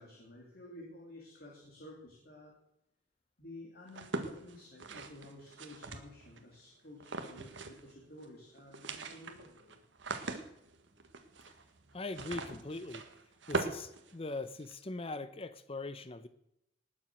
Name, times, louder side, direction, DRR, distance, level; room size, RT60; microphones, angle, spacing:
voice 1, 0.0-2.5 3.4-9.8, left 1 dB, 55° left, -2 dB, 3.3 m, -52 dB
sound 1, 3.9-6.4 7.0-7.9 8.2-8.3 8.6-14.7, right 3 dB, 75° right, 1.5 m, -41 dB
voice 2, 11.9-13.1 13.5-16.3, left 2 dB, 30° left, 13 dB, 0.7 m, -41 dB
19.5 x 7.5 x 6.4 m, 0.82 s
head